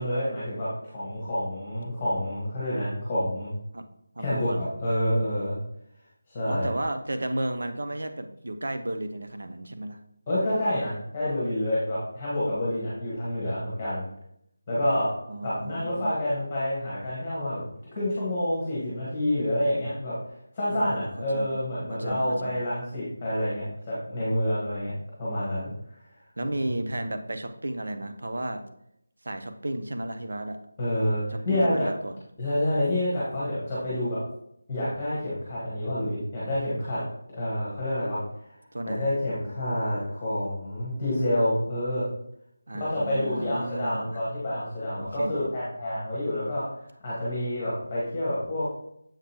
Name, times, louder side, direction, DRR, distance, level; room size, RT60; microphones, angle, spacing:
voice 1, 0.0-3.5 4.2-5.6 6.3-6.7 10.3-14.0 14.7-15.1 15.4-17.7 17.9-20.2 20.5-24.9 25.2-26.0 30.8-31.9 32.4-34.2 34.7-37.0 37.3-38.2 38.8-42.0 42.8-46.6 47.0-48.7, left 1 dB, 10° left, -9 dB, 1.4 m, -28 dB
voice 2, 4.2-4.7 6.5-10.0 15.3-16.1 20.7-21.6 21.9-22.6 26.4-28.6 29.2-30.6 31.3-32.2 38.7-39.1 42.7-44.2 45.0-45.5, right 1 dB, 65° right, 7 dB, 0.7 m, -33 dB
7.4 x 5.1 x 2.9 m, 0.76 s
figure-of-eight pair, 180°, 0 cm